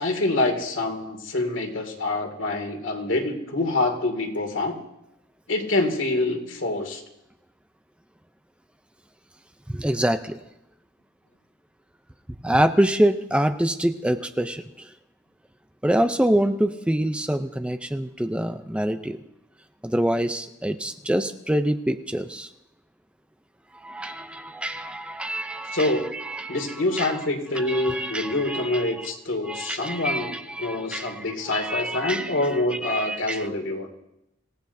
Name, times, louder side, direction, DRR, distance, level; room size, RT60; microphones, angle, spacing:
voice 1, 0.0-4.8 5.5-7.0 25.7-26.1 26.5-33.9, left 2 dB, 75° left, 3 dB, 2.2 m, -26 dB
voice 2, 9.7-10.4 12.4-14.9 15.8-19.2 19.8-22.5 23.7-27.2 27.6-29.1 29.4-32.4 32.7-33.5, right 1 dB, 5° right, 9 dB, 0.5 m, -26 dB
26.0 x 16.0 x 2.7 m, 0.84 s
head